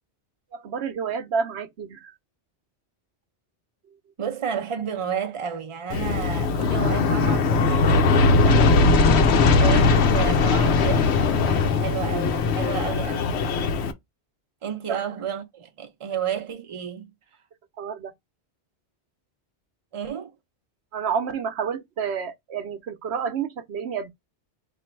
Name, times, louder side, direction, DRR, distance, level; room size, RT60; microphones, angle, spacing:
voice 1, 0.5-2.1 9.8-10.0 14.9-15.0 17.8-18.1 20.9-24.1, right 6 dB, 70° right, 0.9 m, -29 dB
voice 2, 4.2-8.7 9.6-13.4 14.6-17.1 19.9-20.4, right 8 dB, 35° right, 0.6 m, -31 dB
Aircraft, 5.9-13.9, left 4 dB, 75° left, 0.9 m, -20 dB
3.1 x 2.6 x 4.4 m
omnidirectional pair, 1.2 m